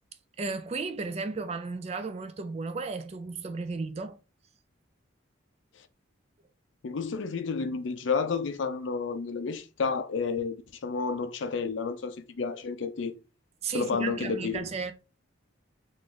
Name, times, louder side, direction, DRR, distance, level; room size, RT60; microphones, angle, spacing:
voice 1, 0.4-4.2 13.6-14.9, right 4 dB, 30° right, 0.3 m, -34 dB
voice 2, 6.8-10.6 10.8-13.1 13.7-14.7, left 5 dB, 65° left, 0.5 m, -31 dB
3.7 x 2.6 x 3.1 m
head